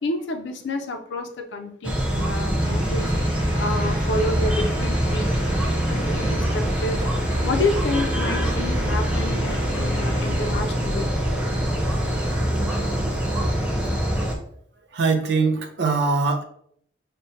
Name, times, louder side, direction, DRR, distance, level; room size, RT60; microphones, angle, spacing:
voice 1, 0.0-3.1 3.6-5.3 5.9-7.1 7.4-11.1, left 2 dB, 75° left, 5 dB, 0.5 m, -29 dB
sound 1, 1.8-14.3, equal, 5° right, 0.4 m, -24 dB
sound 2, 2.6-10.5, equal, 35° left, 0.9 m, -32 dB
voice 2, 14.9-16.4, right 4 dB, 70° right, 4 dB, 0.4 m, -22 dB
4.9 x 2.2 x 2.7 m, 0.67 s
head